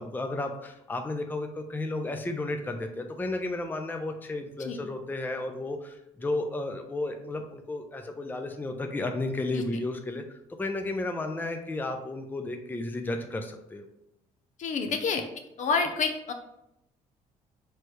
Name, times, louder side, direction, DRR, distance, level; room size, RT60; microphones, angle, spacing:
voice 1, 0.0-13.9, left 2 dB, 15° left, 5 dB, 0.5 m, -33 dB
voice 2, 14.6-15.2 15.6-16.3, left 4 dB, 60° left, 6 dB, 0.6 m, -28 dB
4.3 x 3.2 x 3.2 m, 0.83 s
cardioid pair, 85°, 15 cm